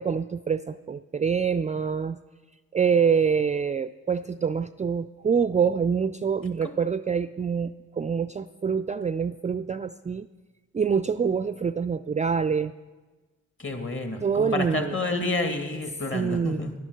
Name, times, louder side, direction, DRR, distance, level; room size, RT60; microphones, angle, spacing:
voice 1, 0.0-2.2 2.7-10.3 10.7-12.7 14.2-15.0 16.1-16.7, right 6 dB, 20° right, 13 dB, 0.4 m, -26 dB
voice 2, 13.6-16.7, left 2 dB, 35° left, 5 dB, 2.4 m, -29 dB
11.0 x 10.5 x 6.4 m, 1.2 s
supercardioid pair, 55°, 33 cm